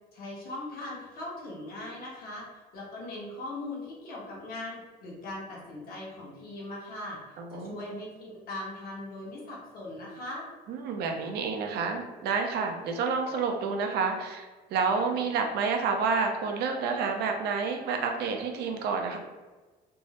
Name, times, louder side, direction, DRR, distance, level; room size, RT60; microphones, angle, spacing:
voice 1, 0.1-2.5 2.7-7.2 7.5-10.5, left 2 dB, 60° left, -3 dB, 1.1 m, -40 dB
voice 2, 7.4-7.8 10.7-19.2, right 5 dB, 75° right, 3 dB, 0.6 m, -29 dB
3.4 x 2.0 x 2.8 m, 1.3 s
cardioid pair, 110°, 17 cm